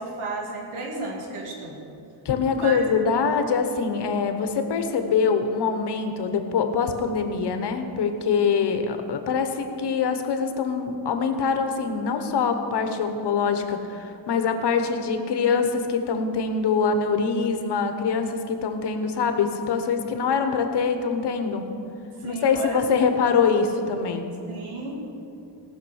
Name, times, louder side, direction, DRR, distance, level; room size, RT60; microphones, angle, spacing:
voice 1, 0.0-1.8 2.6-2.8 22.2-23.1 24.5-25.0, right 2 dB, 85° right, -1 dB, 2.5 m, -33 dB
voice 2, 2.2-21.7 22.2-24.3, left 5 dB, 55° left, 7 dB, 1.1 m, -24 dB
18.0 x 6.1 x 6.3 m, 2.7 s
wide cardioid pair, 180°, 49 cm